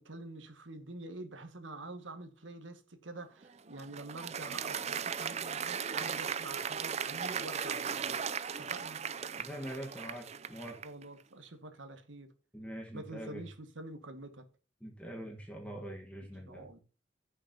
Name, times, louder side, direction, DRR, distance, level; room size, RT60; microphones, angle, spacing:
voice 1, 0.0-8.1 8.6-9.0 10.8-12.3 12.9-14.4 16.5-16.8, right 2 dB, 85° right, 2.0 m, -47 dB
Applause, 3.4-11.0, right 7 dB, 35° right, 0.5 m, -37 dB
voice 2, 9.4-10.8 12.5-13.4 14.8-16.7, equal, 5° left, 1.6 m, -44 dB
15.5 x 6.7 x 2.9 m
head